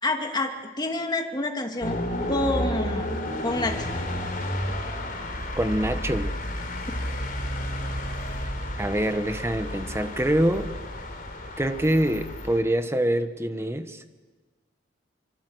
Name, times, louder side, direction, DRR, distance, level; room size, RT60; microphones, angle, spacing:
voice 1, 0.0-2.0 2.3-3.1 3.4-3.9, left 2 dB, 25° left, 3 dB, 2.5 m, -28 dB
sound 1, 1.8-12.6, left 1 dB, 50° left, 3.9 m, -31 dB
voice 2, 5.5-6.3 8.8-10.7 11.6-14.0, right 1 dB, 15° right, 9 dB, 1.4 m, -25 dB
25.5 x 24.5 x 8.1 m, 1.4 s
head